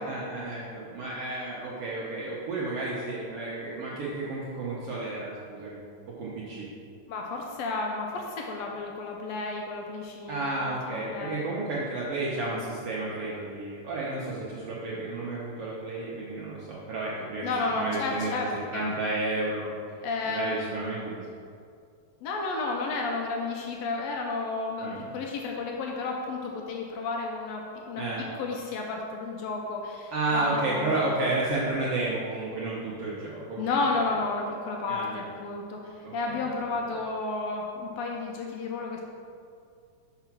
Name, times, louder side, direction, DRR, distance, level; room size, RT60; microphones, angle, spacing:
voice 1, 0.0-5.8 6.1-6.7 10.3-17.5 17.7-18.3 18.7-19.7 20.2-21.2 24.8-25.1 27.9-28.2 30.1-33.9 34.9-35.2 36.0-36.4, right 2 dB, 80° right, -6 dB, 1.3 m, -32 dB
voice 2, 7.1-11.4 17.4-18.9 20.0-20.7 22.2-28.0 28.4-31.1 33.6-39.0, left 3 dB, 85° left, 0 dB, 1.5 m, -32 dB
5.8 x 4.9 x 5.8 m, 2.3 s
omnidirectional pair, 3.8 m